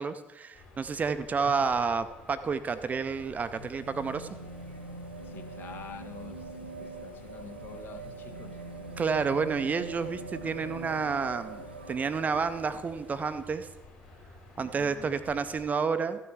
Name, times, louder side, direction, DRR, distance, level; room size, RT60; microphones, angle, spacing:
voice 1, 0.0-4.3 9.0-13.7 14.6-16.3, right 5 dB, 30° right, 0.6 m, -30 dB
sound 1, 0.5-15.7, left 2 dB, 60° left, 3.0 m, -53 dB
sound 2, 2.6-13.5 14.7-14.8, right 2 dB, 85° right, 0.5 m, -43 dB
voice 2, 5.2-8.6 14.6-15.2, left 6 dB, 40° left, 0.8 m, -47 dB
13.5 x 6.5 x 4.7 m
figure-of-eight pair, 55°, 5 cm